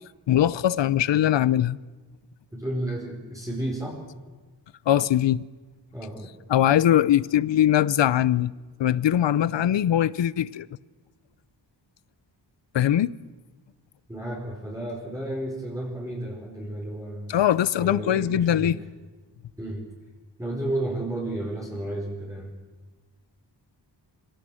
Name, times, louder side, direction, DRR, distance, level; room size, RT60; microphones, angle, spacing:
voice 1, 0.3-1.8 4.9-5.5 6.5-8.5 8.8-10.7 12.7-13.1 17.3-18.8, left 11 dB, 75° left, 0.7 m, -21 dB
voice 2, 2.5-4.0 5.9-6.4 14.1-17.3 17.8-18.7 19.6-19.8 20.4-22.5, right 1 dB, 5° right, 4.8 m, -32 dB
25.0 x 17.0 x 7.7 m
wide cardioid pair, 110°, 44 cm